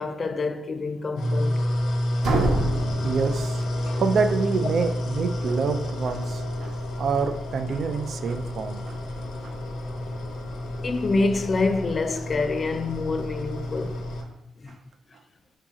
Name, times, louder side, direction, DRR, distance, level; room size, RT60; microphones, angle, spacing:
voice 1, 0.0-1.7 10.8-14.1 14.6-14.8, left 3 dB, 35° left, 0.4 m, -26 dB
sound 1, 1.2-14.2, left 1 dB, 75° left, 0.8 m, -29 dB
sound 2, 2.2-4.1, right 2 dB, 75° right, 1.0 m, -27 dB
voice 2, 3.0-3.6 4.0-9.0 9.4-9.6, right 5 dB, 55° right, 0.4 m, -27 dB
4.8 x 2.8 x 3.6 m
cardioid pair, 90°, 0 cm